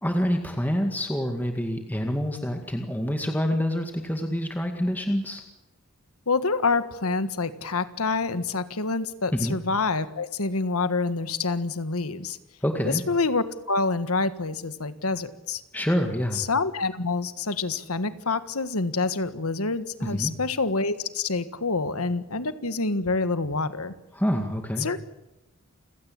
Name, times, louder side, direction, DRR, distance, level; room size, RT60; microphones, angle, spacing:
voice 1, 0.0-5.4 9.3-9.6 12.6-13.0 15.7-16.4 20.0-20.3 24.1-24.9, equal, 10° left, 4 dB, 2.0 m, -27 dB
voice 2, 6.3-12.4 12.8-15.6 16.3-23.9 24.8-25.0, left 3 dB, 85° left, 12 dB, 1.6 m, -27 dB
29.0 x 17.0 x 8.7 m, 0.97 s
head